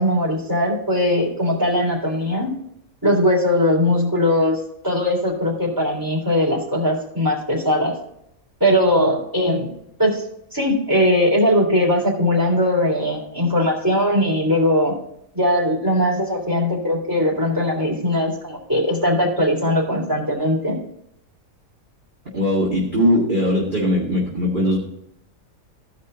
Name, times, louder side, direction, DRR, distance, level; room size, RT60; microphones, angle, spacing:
voice 1, 0.0-2.5 3.0-7.9 8.6-10.2 10.5-14.9 15.3-20.8, left 1 dB, 15° right, -3 dB, 3.4 m, -20 dB
voice 2, 22.3-24.8, equal, 35° right, -6 dB, 2.3 m, -20 dB
16.0 x 5.4 x 3.9 m, 0.75 s
omnidirectional pair, 1.5 m